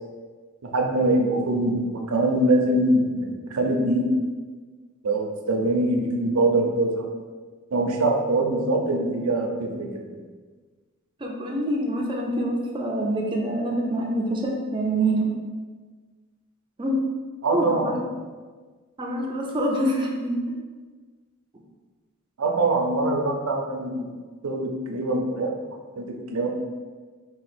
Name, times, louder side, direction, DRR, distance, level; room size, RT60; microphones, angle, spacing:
voice 1, 0.6-4.1 5.0-7.1 7.7-10.2 17.4-17.9 22.4-24.1 24.4-25.5 26.0-26.5, right 2 dB, 85° right, 2 dB, 0.6 m, -23 dB
voice 2, 11.2-15.3 16.8-17.0 17.5-18.0 19.0-20.6, right 1 dB, 25° right, 0 dB, 0.4 m, -26 dB
3.8 x 2.4 x 4.3 m, 1.4 s
head